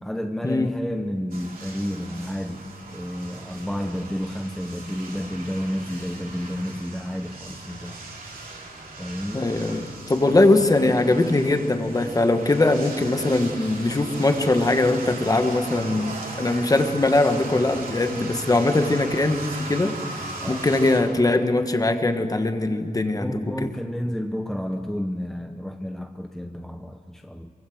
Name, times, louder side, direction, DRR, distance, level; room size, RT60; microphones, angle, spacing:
voice 1, 0.0-8.0 9.0-9.5 10.3-10.4 20.4-20.7 23.2-27.5, equal, 5° left, 5 dB, 0.8 m, -31 dB
sound 1, 1.3-21.0, right 2 dB, 75° right, 4.4 m, -38 dB
voice 2, 9.3-23.7, left 2 dB, 25° left, 7 dB, 1.4 m, -21 dB
24.5 x 24.0 x 7.9 m, 2.2 s
wide cardioid pair, 170°, 15 cm